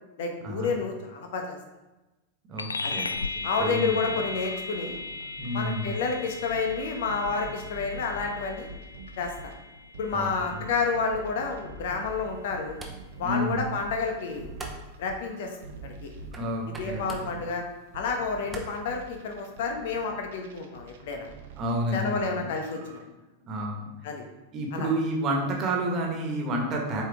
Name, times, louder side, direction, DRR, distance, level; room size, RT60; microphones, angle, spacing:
voice 1, 0.2-1.6 2.8-3.0 3.4-5.0 5.5-8.7 9.2-9.5 10.0-12.7 13.2-14.5 15.0-15.6 15.8-16.1 16.7-17.6 17.9-21.3 21.9-23.0 24.0-24.2 24.7-24.9, left 4 dB, 55° left, 3 dB, 1.1 m, -30 dB
voice 2, 2.5-4.2 5.4-6.0 10.1-10.6 13.2-13.6 16.3-17.4 21.6-22.5 23.5-23.9 24.5-27.0, right 1 dB, 30° right, 0 dB, 1.5 m, -30 dB
sound 1, 2.6-12.4, left 3 dB, 80° left, 0.3 m, -37 dB
sound 2, 3.8-9.5 9.9-22.3 22.6-23.0, right 2 dB, 60° right, 0.8 m, -45 dB
sound 3, 12.0-19.5, right 2 dB, 15° right, 1.0 m, -47 dB
7.9 x 4.4 x 3.5 m, 1.1 s
figure-of-eight pair, 90°, 0 cm